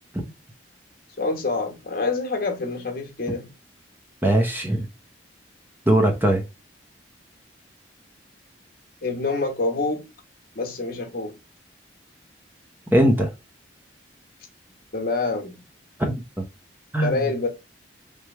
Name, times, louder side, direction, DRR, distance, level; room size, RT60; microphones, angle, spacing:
voice 1, 1.2-3.5 9.0-10.1 10.5-11.4 14.9-15.6 17.0-17.5, left 3 dB, 50° left, 1.2 m, -26 dB
voice 2, 4.2-4.9 5.9-6.4 12.9-13.3 16.0-16.1 16.9-17.2, right 1 dB, 10° right, 0.7 m, -20 dB
3.4 x 3.2 x 3.0 m
head